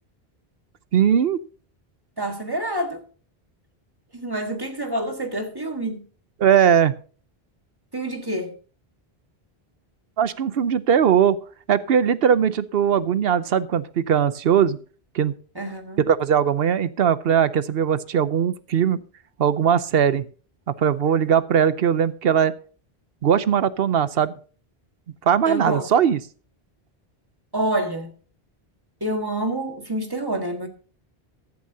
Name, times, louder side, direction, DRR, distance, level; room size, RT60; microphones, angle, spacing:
voice 1, 0.9-1.4 6.4-6.9 10.2-11.4 11.7-14.8 15.1-15.3 16.1-19.0 19.4-20.2 20.8-22.5 23.2-24.3 25.3-26.2, right 8 dB, 70° right, 0.9 m, -19 dB
voice 2, 2.2-3.0 4.1-6.1 7.9-8.5 15.6-16.1 25.4-25.9 27.5-28.1 29.0-30.7, right 1 dB, 20° right, 1.7 m, -27 dB
15.0 x 11.0 x 2.8 m
omnidirectional pair, 1.1 m